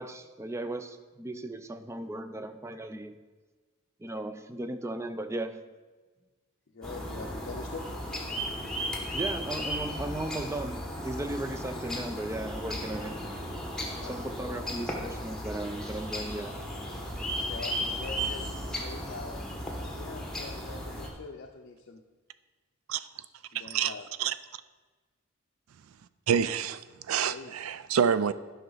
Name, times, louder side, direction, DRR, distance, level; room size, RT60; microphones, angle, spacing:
voice 1, 0.0-3.2 4.0-5.6 9.1-13.2 14.0-16.6, right 1 dB, 15° right, 0.4 m, -36 dB
voice 2, 6.7-7.9 14.0-14.7 17.4-22.0 23.5-24.1 27.2-27.5, left 4 dB, 55° left, 0.5 m, -43 dB
sound 1, 6.8-21.1, equal, 5° left, 1.2 m, -35 dB
voice 3, 23.5-23.9 24.2-24.3 26.3-28.3, right 7 dB, 85° right, 0.4 m, -27 dB
11.0 x 5.6 x 3.9 m
head